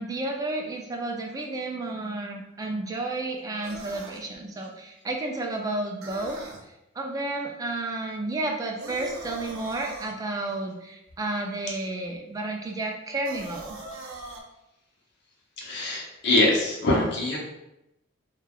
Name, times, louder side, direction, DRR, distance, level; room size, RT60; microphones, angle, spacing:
voice 1, 0.0-6.4 7.0-13.8, right 2 dB, 20° right, 1 dB, 0.3 m, -31 dB
sound 1, 3.6-4.2 6.0-6.6 8.8-10.1 13.2-14.4, right 2 dB, 85° right, 0.5 m, -40 dB
voice 2, 15.6-17.4, left 2 dB, 60° left, -2 dB, 0.7 m, -23 dB
3.2 x 2.3 x 2.3 m, 0.90 s
head